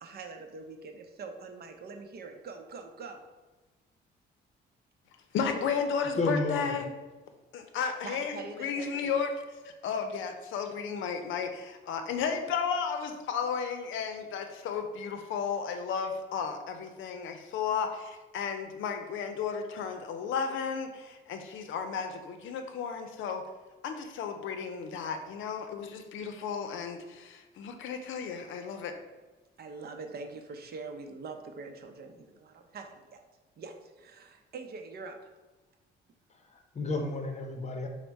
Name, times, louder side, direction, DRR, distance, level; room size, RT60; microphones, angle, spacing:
voice 1, 0.0-3.2 8.0-9.2 29.6-33.2 33.6-35.2, right 4 dB, 55° right, 5 dB, 0.6 m, -44 dB
voice 2, 5.3-6.8 7.5-9.3 9.8-23.4 23.8-29.0, left 6 dB, 80° left, 6 dB, 0.5 m, -33 dB
voice 3, 6.1-6.8 36.5-37.9, left 2 dB, 35° left, 4 dB, 0.7 m, -31 dB
5.1 x 2.1 x 4.6 m, 1.2 s
cardioid pair, 90°, 20 cm